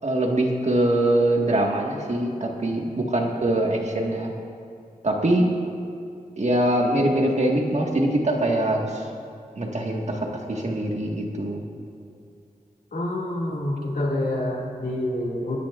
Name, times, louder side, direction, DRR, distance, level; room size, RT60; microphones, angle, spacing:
voice 1, 0.0-4.3 5.0-5.4 6.4-9.0 9.6-11.6, right 1 dB, 50° right, 0 dB, 1.7 m, -23 dB
voice 2, 12.9-15.6, left 1 dB, 75° left, -3 dB, 2.3 m, -27 dB
22.5 x 10.0 x 2.5 m, 2.5 s
cardioid pair, 55°, 15 cm